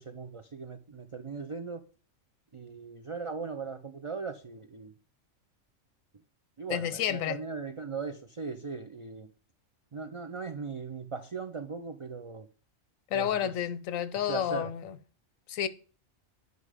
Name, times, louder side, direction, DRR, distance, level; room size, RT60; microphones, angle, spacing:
voice 1, 0.0-1.8 2.5-4.9 6.6-9.3 9.9-12.5 13.1-13.5 14.2-14.7, right 5 dB, 50° right, 0.3 m, -39 dB
voice 2, 6.7-7.4 13.1-15.0 15.5-15.7, left 10 dB, 90° left, 1.0 m, -30 dB
9.4 x 5.3 x 4.9 m
omnidirectional pair, 1.4 m